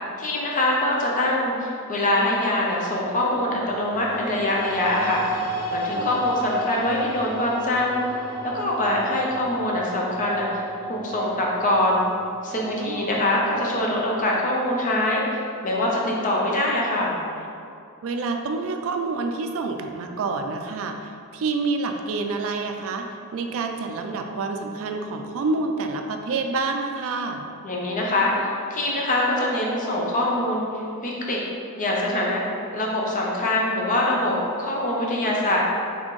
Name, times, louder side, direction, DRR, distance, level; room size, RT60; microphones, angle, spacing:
voice 1, 0.2-5.4 5.7-12.1 12.4-17.2 27.6-30.7 31.0-31.4 31.8-32.4 32.7-35.6, left 1 dB, 35° left, -3 dB, 0.7 m, -24 dB
sound 1, 2.9-15.1, right 1 dB, 75° left, 0.7 m, -33 dB
voice 2, 12.8-13.1 18.0-23.1 23.3-27.4, right 3 dB, 65° right, 4 dB, 0.3 m, -28 dB
4.2 x 3.4 x 3.1 m, 2.4 s
head